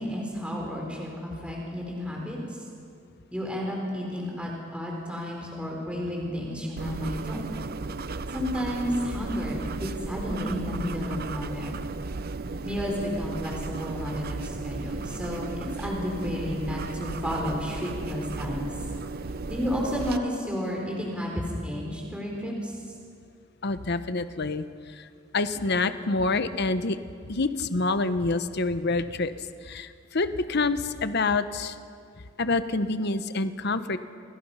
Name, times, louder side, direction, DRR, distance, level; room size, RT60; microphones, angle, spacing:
voice 1, 0.0-2.4 3.3-7.5 8.3-11.8 12.6-18.7 19.5-22.8, equal, 5° right, -2 dB, 4.1 m, -32 dB
sound 1, 6.8-20.2, right 3 dB, 50° right, 0.7 m, -35 dB
voice 2, 23.6-25.1 25.3-27.0 27.3-29.3 29.6-31.8 32.4-34.0, left 3 dB, 55° left, 11 dB, 1.0 m, -27 dB
29.0 x 21.0 x 5.7 m, 2.3 s
head